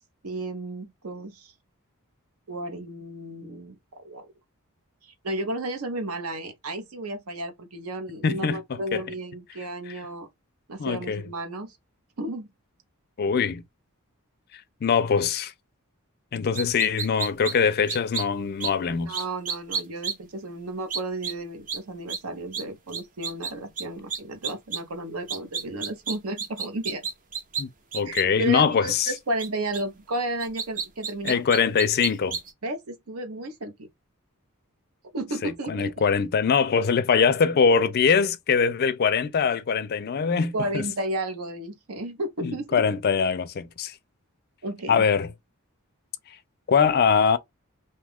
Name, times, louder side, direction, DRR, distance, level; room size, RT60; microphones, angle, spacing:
voice 1, 0.2-1.5 2.5-4.3 5.0-10.3 10.7-11.8 12.2-12.5 18.9-27.1 28.0-31.4 32.6-33.7 35.1-35.9 40.5-42.8 44.6-45.0, right 2 dB, 70° right, 0.7 m, -33 dB
voice 2, 8.2-9.0 9.9-10.0 10.8-11.3 13.2-13.6 14.5-15.5 16.3-19.2 27.6-27.7 27.9-29.1 31.2-32.4 35.4-40.9 42.4-44.0 44.9-45.3 46.7-47.4, left 6 dB, 45° left, 0.4 m, -23 dB
sound 1, 16.5-17.5 17.9-18.2 18.6-18.7 19.1-20.1 20.9-21.3 21.7-21.8 22.1-22.2 22.5-22.6 22.9-23.5 23.8-23.9 24.1-24.8 25.3-27.6 27.9-28.2 29.4-29.5 29.7-29.8 30.4-32.5, right 5 dB, 35° right, 0.6 m, -30 dB
2.8 x 2.3 x 3.4 m
head